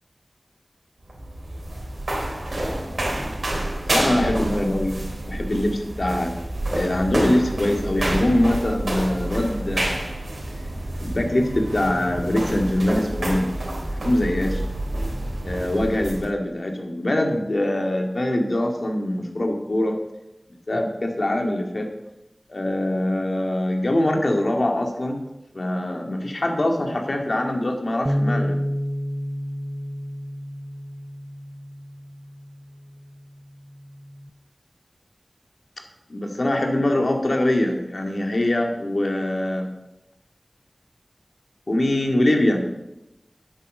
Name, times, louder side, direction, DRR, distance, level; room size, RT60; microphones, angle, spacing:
sound 1, 1.0-16.3, right 1 dB, 80° right, 3.4 m, -28 dB
voice 1, 3.9-6.3 6.7-10.1 11.0-13.5 13.9-14.6 15.4-20.0 20.7-21.9 22.5-25.2 25.5-28.6 36.1-39.7 41.7-42.6, left 1 dB, 65° left, 2 dB, 2.1 m, -23 dB
Bass guitar, 28.1-34.3, equal, 10° right, 0.6 m, -30 dB
10.5 x 8.0 x 6.5 m, 0.92 s
wide cardioid pair, 50°, 0 cm